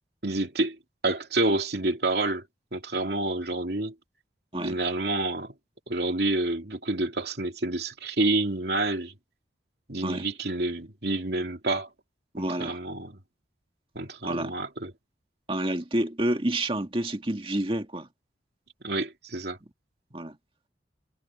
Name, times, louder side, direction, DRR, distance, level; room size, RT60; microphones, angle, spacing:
voice 1, 0.2-0.8 1.0-2.4 2.7-3.9 4.6-5.5 5.9-9.1 9.9-11.9 12.4-13.2 13.9-14.9 18.8-19.6, right 2 dB, 65° right, 2.8 m, -28 dB
voice 2, 12.3-12.8 14.2-14.5 15.5-18.1 20.1-20.4, right 1 dB, 30° right, 2.0 m, -29 dB
head